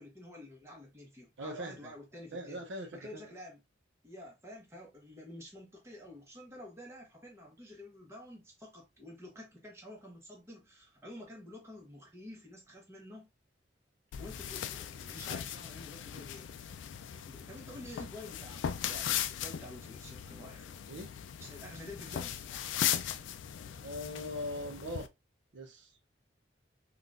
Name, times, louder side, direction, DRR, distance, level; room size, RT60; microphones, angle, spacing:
voice 1, 0.0-3.6 4.0-13.3 14.2-16.5 17.1-20.8 21.4-22.5, left 1 dB, 15° right, 1.0 m, -49 dB
voice 2, 1.4-1.9 2.3-3.3 20.9-21.1 23.8-25.1 25.5-25.9, left 1 dB, 75° right, 0.6 m, -41 dB
sound 1, 14.1-25.1, left 10 dB, 85° left, 0.3 m, -38 dB
3.7 x 2.4 x 2.4 m
head